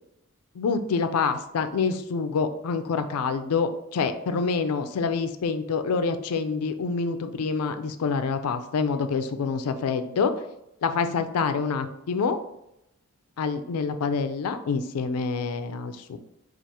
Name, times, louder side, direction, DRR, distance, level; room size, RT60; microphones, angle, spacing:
voice 1, 0.6-10.3 10.8-12.4 13.4-16.2, left 5 dB, 80° left, 10 dB, 0.4 m, -26 dB
4.6 x 2.4 x 2.8 m, 0.84 s
head